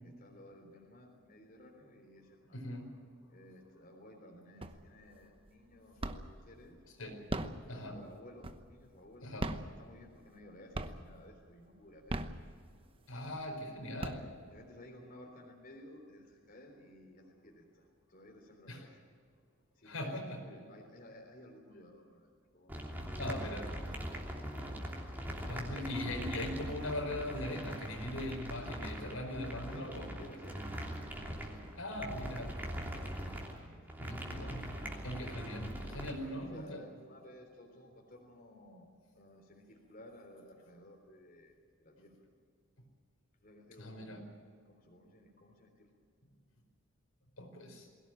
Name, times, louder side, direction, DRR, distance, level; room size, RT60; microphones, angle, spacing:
voice 1, 0.0-2.8 3.3-6.8 7.4-9.4 9.8-12.3 14.5-19.0 19.7-22.8 29.7-31.0 31.3-32.4 32.9-33.4 33.7-34.0 35.9-42.3 43.4-44.3 44.6-45.9, left 1 dB, 40° left, 1 dB, 3.8 m, -56 dB
voice 2, 2.5-3.0 7.0-7.2 7.7-8.0 9.2-9.5 13.1-14.3 18.7-18.8 19.8-20.4 23.2-24.0 25.5-30.1 31.8-32.5 34.0-34.8 35.0-36.8 43.8-44.2 47.4-47.9, left 1 dB, 85° left, 2 dB, 4.9 m, -40 dB
sound 1, 4.6-5.1 5.5-6.5 7.1-8.9 9.3-10.4 10.7-11.3 11.9-13.0 13.5-13.6 13.8-14.7, right 1 dB, 25° right, 1.0 m, -39 dB
sound 2, 22.7-36.1, equal, 10° right, 3.0 m, -42 dB
22.0 x 17.0 x 9.1 m, 2.1 s
head